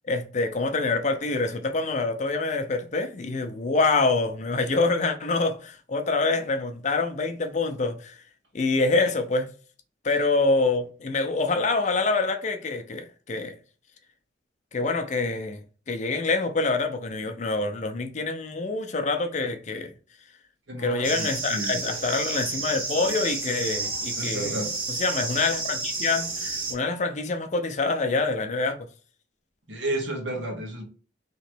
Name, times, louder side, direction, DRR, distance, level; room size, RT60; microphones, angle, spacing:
voice 1, 0.1-8.2 8.5-9.5 10.0-13.6 14.7-19.9 20.8-24.6 24.9-28.9, left 3 dB, 40° left, 0.5 m, -26 dB
voice 2, 20.7-21.8 24.2-24.7 29.7-30.8, right 1 dB, 75° right, 1.2 m, -32 dB
sound 1, 21.0-26.7, right 3 dB, 45° right, 1.3 m, -31 dB
3.1 x 2.9 x 4.4 m
head